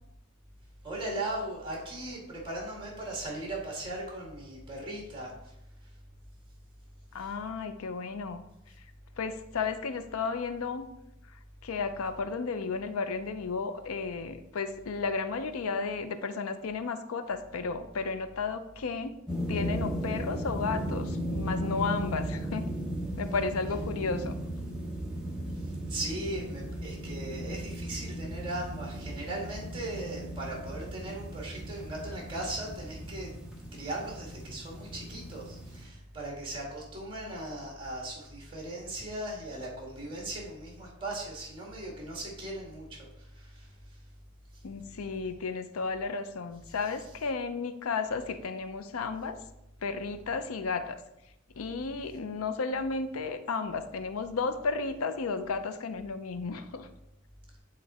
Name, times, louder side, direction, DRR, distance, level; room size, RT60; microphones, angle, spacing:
voice 1, 0.8-5.5 7.2-7.3 25.5-33.3 33.7-44.0 44.5-44.6, right 1 dB, 25° right, -2 dB, 1.8 m, -38 dB
voice 2, 7.1-8.4 8.8-8.9 9.2-10.9 11.3-19.2 19.5-22.7 23.2-24.4 44.6-49.4 49.8-51.0 51.5-56.9, left 4 dB, 85° left, 10 dB, 0.5 m, -33 dB
sound 1, 19.3-35.8, right 1 dB, 5° right, 1.2 m, -36 dB
8.8 x 3.8 x 4.2 m, 0.84 s
head